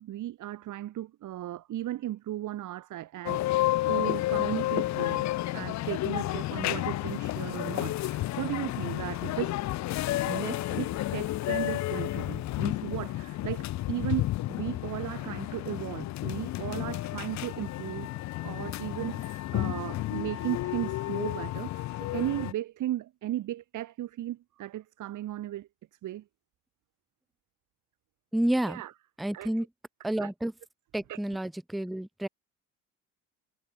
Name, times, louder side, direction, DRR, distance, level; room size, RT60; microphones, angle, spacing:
voice 1, 0.0-9.6 10.3-25.7 26.0-26.2 28.7-28.9 29.3-29.5 30.2-30.3 31.1-31.2, right 13 dB, 50° right, 1.4 m, -36 dB
sound 1, 3.3-22.5, left 16 dB, 45° left, 0.6 m, -31 dB
voice 2, 28.3-28.8 29.2-29.7 30.0-30.5 30.9-32.3, right 1 dB, ahead, 0.3 m, -29 dB
hypercardioid pair, 65°, 38 cm